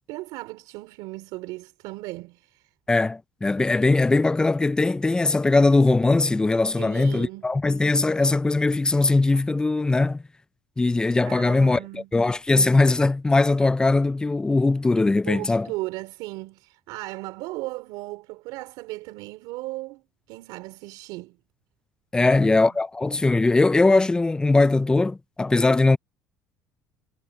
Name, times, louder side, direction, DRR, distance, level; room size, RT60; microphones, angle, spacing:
voice 1, 0.1-2.7 6.8-7.5 11.2-12.1 15.3-20.0 20.3-21.4 22.2-22.7, right 20 dB, 80° right, 4.1 m, -36 dB
voice 2, 2.9-10.2 10.8-15.7 22.1-26.0, left 3 dB, 10° left, 0.5 m, -20 dB
cardioid pair, 115°, 7 cm